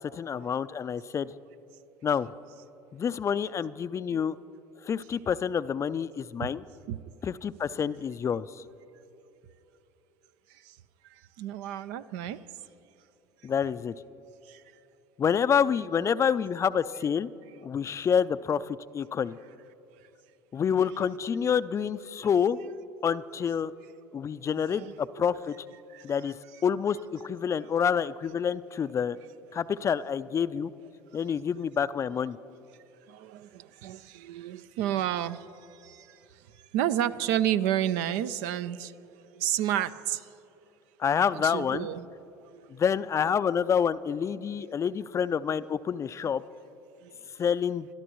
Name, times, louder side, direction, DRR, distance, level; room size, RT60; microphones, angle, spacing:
voice 1, 0.0-1.4 2.0-2.3 2.9-4.4 4.8-6.6 7.2-8.4 13.4-13.9 15.2-17.3 17.6-19.4 20.5-22.7 23.0-23.7 24.1-25.6 26.0-26.3 26.6-29.2 29.5-30.7 31.1-32.4 41.0-41.9 42.7-46.4 47.4-47.9, left 7 dB, 30° left, 16 dB, 0.4 m, -28 dB
voice 2, 11.0-12.4 14.5-14.6 24.5-24.9 25.9-26.1 33.1-40.3 41.3-42.1 42.4-42.8 47.0-47.1, right 11 dB, 70° right, 13 dB, 0.5 m, -31 dB
29.0 x 13.0 x 3.1 m, 3.0 s
hypercardioid pair, 75°, 10 cm